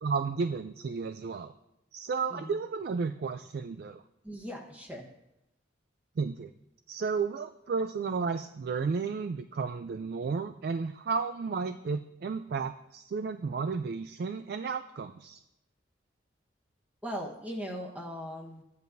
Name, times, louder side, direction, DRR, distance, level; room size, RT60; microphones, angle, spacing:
voice 1, 0.0-1.5 1.9-4.0 6.2-6.5 6.9-15.4, right 5 dB, 55° right, 9 dB, 0.3 m, -33 dB
voice 2, 4.2-5.0 17.0-18.6, equal, 10° right, 1 dB, 1.1 m, -39 dB
14.0 x 9.5 x 2.6 m, 0.87 s
head